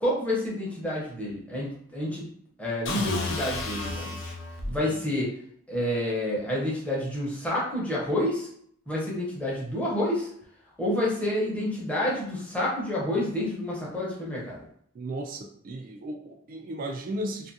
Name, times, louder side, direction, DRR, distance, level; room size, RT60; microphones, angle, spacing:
voice 1, 0.0-2.3 2.6-4.2 4.7-5.3 5.7-8.5 8.9-10.3 10.8-14.7, left 1 dB, 5° left, -6 dB, 0.8 m, -29 dB
sound 1, 2.9-4.8, left 2 dB, 60° left, 0.5 m, -32 dB
voice 2, 14.9-17.5, right 1 dB, 40° right, 1 dB, 0.3 m, -35 dB
2.6 x 2.5 x 2.7 m, 0.65 s
head